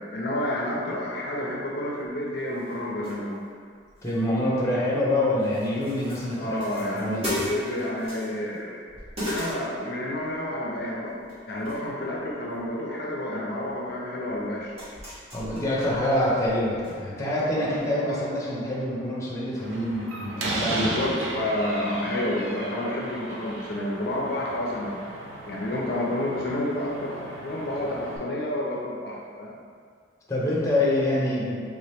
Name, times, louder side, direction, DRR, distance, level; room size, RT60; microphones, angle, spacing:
voice 1, 0.0-3.4 6.4-8.8 9.3-14.8 17.6-18.3 20.7-25.0 25.5-29.5, left 1 dB, 55° left, -3 dB, 0.4 m, -30 dB
sound 1, 2.0-2.1 2.5-3.5 3.8-5.1 5.4-8.6 8.9-10.3 11.0-11.9 12.2-12.7 13.7-13.8 14.3-16.9 17.2-17.3 17.7-17.9, equal, 30° right, 1.2 m, -38 dB
voice 2, 4.0-7.5 15.3-20.9 30.3-31.6, left 1 dB, 15° left, -6 dB, 0.6 m, -26 dB
Slam, 19.6-28.2, right 1 dB, 85° right, 0.6 m, -36 dB
3.4 x 2.8 x 3.4 m, 2.1 s
head